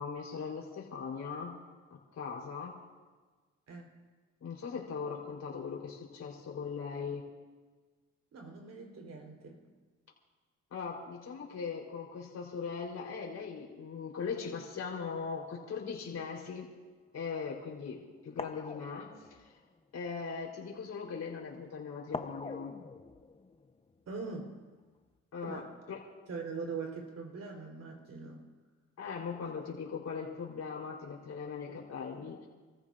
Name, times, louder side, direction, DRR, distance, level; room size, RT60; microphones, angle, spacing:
voice 1, 0.0-1.6 2.1-2.8 4.4-7.2 10.7-16.7 17.1-19.4 19.9-22.7 25.3-25.6 25.9-26.0 29.0-32.5, left 5 dB, 60° left, -2 dB, 4.2 m, -39 dB
voice 2, 8.3-9.6 24.1-24.5 25.4-25.7 26.3-28.4, right 4 dB, 55° right, 1 dB, 4.2 m, -42 dB
sound 1, 16.8-17.0 17.8-17.9 18.4-20.1 22.1-24.7 25.0-25.1, left 3 dB, 20° left, 0.9 m, -45 dB
29.0 x 14.5 x 2.6 m, 1.4 s
cardioid pair, 90°, 30 cm